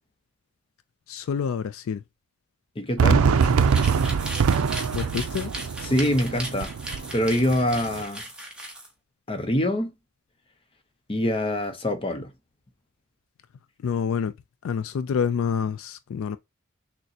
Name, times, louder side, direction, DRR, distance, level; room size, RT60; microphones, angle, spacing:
voice 1, 1.1-2.0 4.9-5.5 13.8-14.3 14.6-16.4, left 6 dB, 70° left, 0.3 m, -27 dB
voice 2, 2.8-3.3 5.8-6.7 7.1-8.2 9.3-9.9 11.1-12.3, left 1 dB, 25° left, 0.7 m, -24 dB
Fireworks, 3.0-8.0, right 6 dB, 80° right, 0.4 m, -24 dB
sound 1, 3.3-8.9, right 1 dB, 5° right, 0.9 m, -37 dB
6.4 x 2.1 x 2.7 m
head